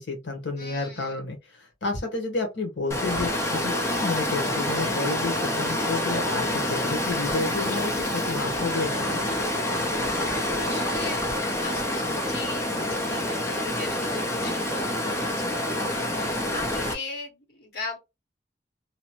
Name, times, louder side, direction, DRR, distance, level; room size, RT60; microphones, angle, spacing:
voice 1, 0.0-9.4, left 3 dB, 85° left, 1.1 m, -31 dB
voice 2, 0.6-1.2 10.6-11.2 11.5-15.3 16.1-18.0, left 3 dB, 65° left, 1.8 m, -39 dB
Water, 2.9-16.9, left 1 dB, 15° left, 0.6 m, -27 dB
2.9 x 2.1 x 2.9 m
head